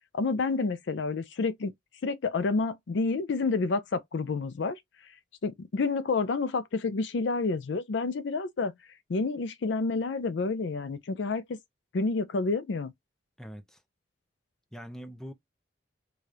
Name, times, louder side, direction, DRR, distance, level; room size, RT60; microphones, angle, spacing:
voice 1, 0.1-1.7 2.0-4.8 5.4-8.7 9.1-11.4 11.9-12.9, left 3 dB, 65° left, 0.4 m, -29 dB
voice 2, 13.4-13.8 14.7-15.3, equal, 5° left, 0.5 m, -43 dB
4.8 x 2.3 x 2.6 m
head